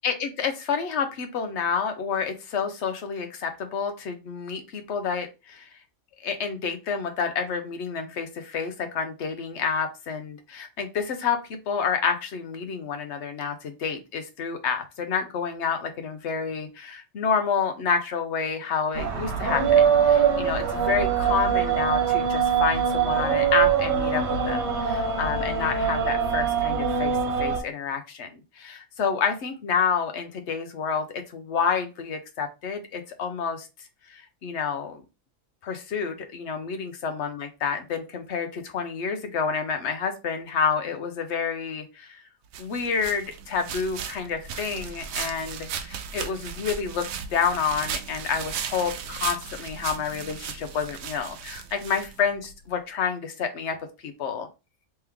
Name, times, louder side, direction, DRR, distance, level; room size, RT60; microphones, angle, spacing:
voice 1, 0.0-5.7 6.2-33.7 34.1-35.0 35.6-42.2 42.6-53.8 54.0-54.5, left 6 dB, 60° left, 6 dB, 1.0 m, -29 dB
sound 1, 18.9-27.6, right 7 dB, 55° right, 1.3 m, -23 dB
sound 2, 42.5-52.5, right 7 dB, 85° right, 1.0 m, -36 dB
3.4 x 3.1 x 3.5 m, 0.27 s
omnidirectional pair, 1.4 m